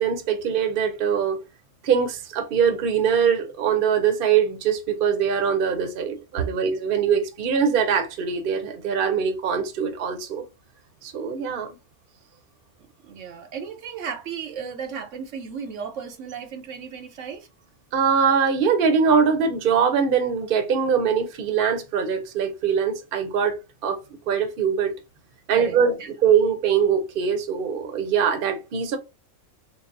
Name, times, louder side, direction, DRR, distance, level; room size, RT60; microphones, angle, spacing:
voice 1, 0.0-1.4 1.8-10.4 11.0-11.7 17.9-23.5 23.8-24.0 24.3-24.9 25.5-25.9 26.2-29.0, right 7 dB, 50° right, 0.8 m, -22 dB
voice 2, 13.0-17.5 25.5-26.1, right 7 dB, 80° right, 1.1 m, -34 dB
3.8 x 2.1 x 3.8 m
omnidirectional pair, 1.3 m